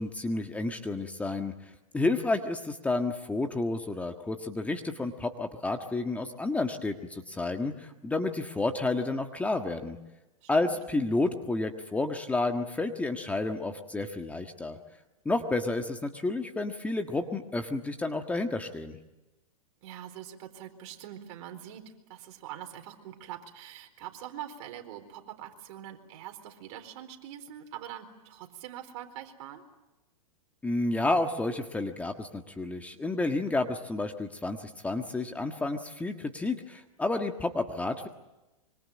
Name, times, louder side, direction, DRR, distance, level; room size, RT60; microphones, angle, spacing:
voice 1, 0.0-1.5 1.9-10.0 10.5-14.8 15.2-19.0 30.6-38.1, left 2 dB, 10° left, 5 dB, 1.6 m, -30 dB
voice 2, 10.4-10.8 19.8-29.6, right 11 dB, 55° right, 6 dB, 4.3 m, -44 dB
25.5 x 25.0 x 8.7 m, 1.0 s
hypercardioid pair, 130°, 18 cm